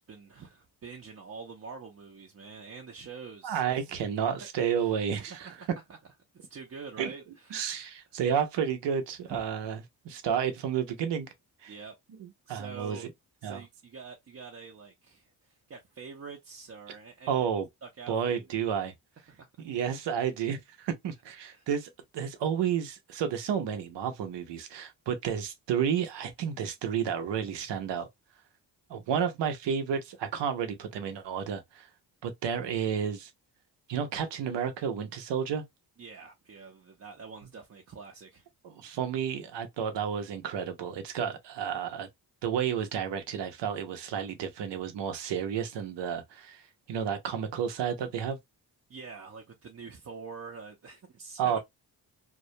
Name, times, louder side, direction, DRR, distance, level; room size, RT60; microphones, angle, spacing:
voice 1, 0.0-3.6 4.8-6.0 6.3-7.6 8.1-8.2 9.3-9.4 11.7-11.9 12.5-13.1 13.4-17.4 17.8-18.5 19.3-19.5 21.5-21.7 36.0-38.5 48.9-51.6, right 5 dB, 35° right, 0.6 m, -46 dB
voice 2, 3.4-5.5 7.0-7.1 7.5-9.8 10.0-11.3 11.6-11.7 12.2-13.1 13.4-13.6 17.3-17.7 18.1-18.9 19.6-28.1 28.9-31.9 32.2-33.3 33.9-35.6 38.6-42.1 42.4-46.6 46.9-48.4 51.4-51.6, right 8 dB, 80° right, 0.7 m, -31 dB
2.3 x 2.1 x 2.7 m
cardioid pair, 65°, 42 cm